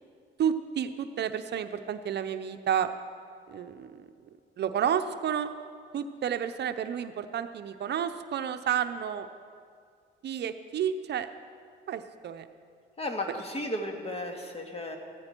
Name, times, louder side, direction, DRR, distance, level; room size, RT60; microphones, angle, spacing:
voice 1, 0.4-2.9 3.5-3.9 4.6-5.5 5.9-9.3 10.2-11.3 11.9-12.5, right 9 dB, 60° right, 9 dB, 0.6 m, -30 dB
voice 2, 13.0-15.0, left 1 dB, 30° left, 3 dB, 1.8 m, -34 dB
15.0 x 13.5 x 4.5 m, 2.2 s
cardioid pair, 90°, 20 cm